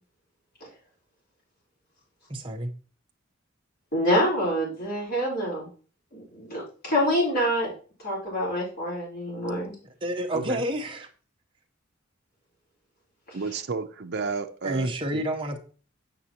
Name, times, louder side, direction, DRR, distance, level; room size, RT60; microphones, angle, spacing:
voice 1, 2.3-2.7 10.0-11.1 14.6-15.6, right 1 dB, 25° right, 2 dB, 0.9 m, -29 dB
voice 2, 3.9-5.7 6.1-7.7 8.0-9.7 13.3-13.4, equal, 50° left, -4 dB, 4.0 m, -26 dB
voice 3, 13.3-15.2, right 4 dB, 55° right, 6 dB, 0.6 m, -32 dB
7.7 x 6.1 x 2.9 m, 0.39 s
head